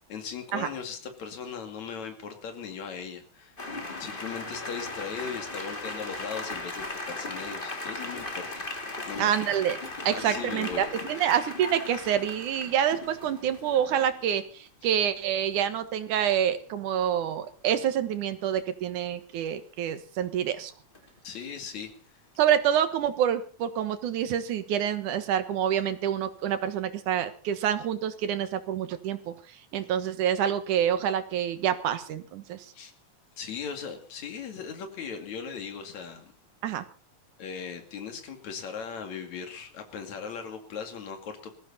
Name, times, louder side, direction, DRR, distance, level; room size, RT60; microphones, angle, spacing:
voice 1, 0.1-3.6 4.0-8.7 9.1-9.4 10.1-11.2 21.2-21.9 32.7-32.9 33.4-36.3 37.4-41.5, left 6 dB, 65° left, 6 dB, 3.7 m, -38 dB
sound 1, 3.6-14.3 16.3-16.4 16.7-16.9 20.9-21.2, left 2 dB, 20° left, 2.3 m, -38 dB
voice 2, 9.2-9.8 10.1-20.7 22.4-29.3 29.7-32.7 36.6-36.9, right 9 dB, 85° right, 11 dB, 2.9 m, -27 dB
20.0 x 15.0 x 4.2 m, 0.40 s
omnidirectional pair, 3.4 m